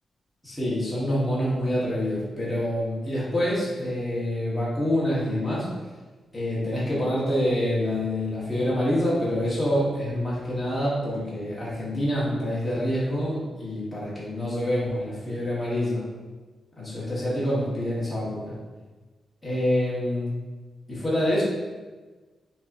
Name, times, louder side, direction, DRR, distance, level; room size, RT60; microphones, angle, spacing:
voice 1, 0.4-5.7 6.3-16.1 16.8-18.6 19.4-20.3 20.9-21.4, left 1 dB, 5° left, -9 dB, 1.1 m, -26 dB
6.3 x 2.8 x 2.5 m, 1.3 s
wide cardioid pair, 155°, 0 cm